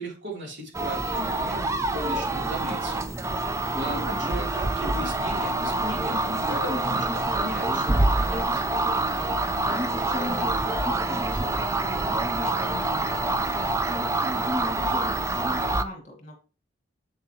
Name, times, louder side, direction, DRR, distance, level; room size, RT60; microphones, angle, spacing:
voice 1, 0.0-3.1 3.7-8.6, right 1 dB, 70° right, -2 dB, 3.5 m, -36 dB
Colorino light probe via mic old Sanyo TV, 0.7-15.8, right 2 dB, 15° right, 0.4 m, -26 dB
voice 2, 3.8-4.2 9.6-14.0 14.6-16.4, left 1 dB, 40° left, 2 dB, 2.3 m, -41 dB
sound 1, 6.6-13.5, left 3 dB, 25° left, 0.6 m, -42 dB
8.2 x 6.6 x 3.1 m, 0.34 s
head